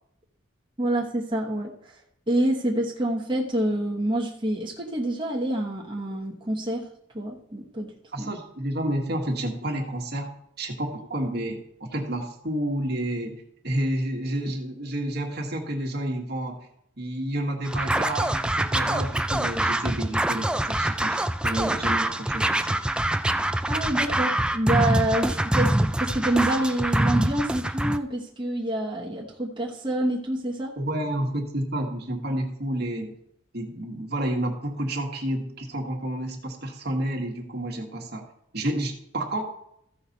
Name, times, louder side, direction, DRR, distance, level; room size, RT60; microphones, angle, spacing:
voice 1, 0.8-1.7 2.3-6.9 7.1-7.9 8.2-8.3 23.7-30.7, right 1 dB, 25° right, -3 dB, 1.2 m, -27 dB
voice 2, 8.1-10.3 10.6-16.7 17.0-22.8 30.8-33.1 33.5-38.2 38.5-39.5, right 1 dB, 55° right, 2 dB, 1.6 m, -30 dB
Scratching (performance technique), 17.7-28.0, right 1 dB, 5° right, 0.3 m, -25 dB
15.0 x 5.9 x 4.2 m, 0.72 s
head